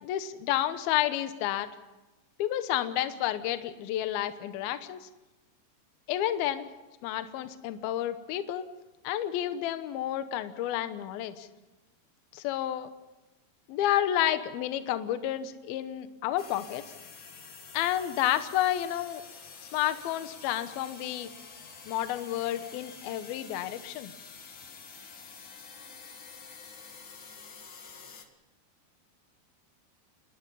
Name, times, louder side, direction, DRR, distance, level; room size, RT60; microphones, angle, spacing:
voice 1, 0.0-1.7 2.4-5.1 6.1-6.7 7.0-8.7 9.0-11.5 12.3-12.9 13.7-16.8 17.7-19.2 19.7-21.3 21.9-24.1, left 12 dB, 75° left, 11 dB, 2.7 m, -30 dB
sound 1, 16.4-28.2, left 5 dB, 45° left, 1.8 m, -48 dB
28.0 x 20.5 x 5.6 m, 1.1 s
omnidirectional pair, 4.7 m